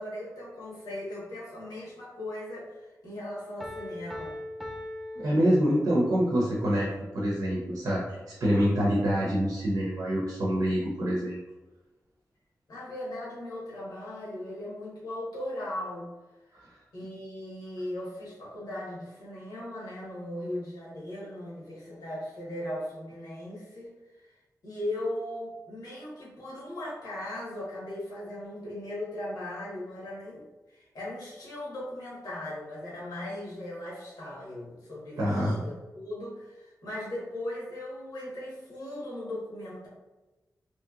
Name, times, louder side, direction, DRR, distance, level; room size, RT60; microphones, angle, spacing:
voice 1, 0.0-4.4 12.7-16.1 16.9-23.9 24.2-24.4 24.6-39.9, left 1 dB, 85° left, -6 dB, 1.3 m, -38 dB
Piano, 3.6-6.2, left 1 dB, ahead, 0.3 m, -40 dB
voice 2, 5.2-6.9 7.1-11.4 35.2-35.5, equal, 70° right, -4 dB, 0.6 m, -26 dB
3.1 x 2.7 x 2.4 m, 1.1 s
wide cardioid pair, 120°, 6 cm